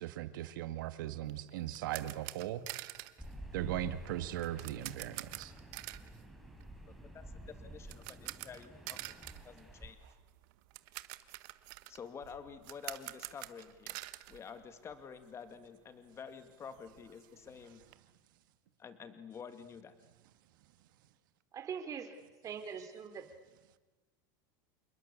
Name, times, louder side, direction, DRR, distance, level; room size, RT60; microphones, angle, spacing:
voice 1, 0.0-2.7 3.5-5.5, right 13 dB, 85° right, 11 dB, 2.0 m, -38 dB
sound 1, 1.3-15.2 15.5-15.6 16.1-16.2 16.4-17.9, right 20 dB, 65° right, 1.4 m, -48 dB
sound 2, 3.2-9.9, right 1 dB, ahead, 4.1 m, -50 dB
voice 2, 6.8-9.0 9.4-10.0 11.9-14.0 14.3-17.8 18.8-19.9, left 6 dB, 25° left, 9 dB, 2.3 m, -49 dB
voice 3, 21.5-22.2 22.4-23.3, right 7 dB, 30° right, 6 dB, 3.7 m, -42 dB
28.0 x 21.0 x 8.6 m, 1.2 s
supercardioid pair, 135°, 11 cm